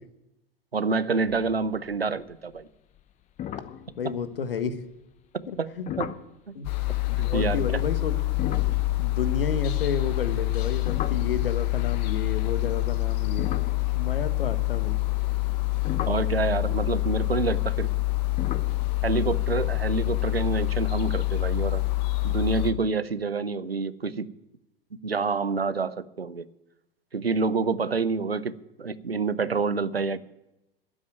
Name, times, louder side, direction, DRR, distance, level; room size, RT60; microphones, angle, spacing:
voice 1, 0.7-2.7 5.3-6.1 7.3-7.7 16.1-17.9 19.0-21.8 22.2-24.3 25.0-26.5 27.1-28.5 28.8-30.2, right 4 dB, 85° right, 16 dB, 0.7 m, -27 dB
sound 1, 1.3-1.9 2.2-2.6 3.0-3.1 3.4-4.7 5.9-6.3 8.2-11.8 12.6-14.8 15.4-20.8, left 10 dB, 25° left, 0.8 m, -38 dB
voice 2, 4.0-4.8 5.5-5.9 6.5-6.7 7.1-8.5 9.0-13.5 13.9-15.0, left 5 dB, 70° left, 12 dB, 1.2 m, -31 dB
sound 2, 6.6-22.7, left 20 dB, 45° left, 1.1 m, -26 dB
13.0 x 6.3 x 9.1 m, 0.92 s
figure-of-eight pair, 90°, 29 cm